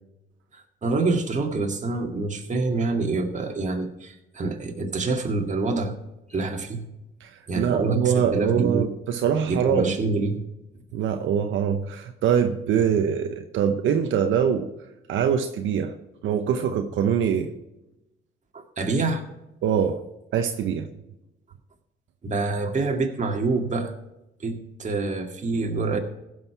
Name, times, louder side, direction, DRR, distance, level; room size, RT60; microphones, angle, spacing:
voice 1, 0.5-5.9 6.3-6.8 7.5-8.9 9.5-10.4 18.5-19.2 22.2-23.9 24.4-26.0, right 3 dB, 35° right, 3 dB, 1.9 m, -26 dB
voice 2, 7.2-10.0 10.9-14.7 15.1-15.9 16.2-17.5 19.6-20.0 20.3-20.9, right 8 dB, 80° right, 6 dB, 0.9 m, -23 dB
15.5 x 6.5 x 4.5 m, 0.94 s
cardioid pair, 90°, 20 cm